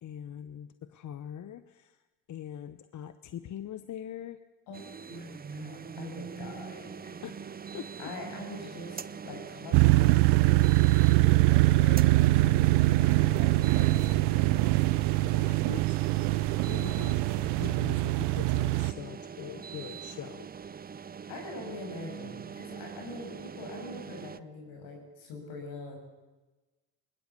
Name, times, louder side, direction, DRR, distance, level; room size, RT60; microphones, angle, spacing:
voice 1, 0.0-2.0 2.3-4.4 7.2-8.1 15.2-15.8 16.3-20.5, left 10 dB, 45° left, 12 dB, 1.0 m, -42 dB
voice 2, 4.7-7.2 8.0-14.8 21.3-26.0, left 2 dB, 75° left, 3 dB, 6.9 m, -43 dB
sound 1, 4.7-24.4, right 6 dB, 20° right, 0.7 m, -43 dB
sound 2, 9.7-18.9, right 19 dB, 70° right, 0.7 m, -23 dB
20.5 x 20.0 x 8.4 m, 1.2 s
hypercardioid pair, 65°, 41 cm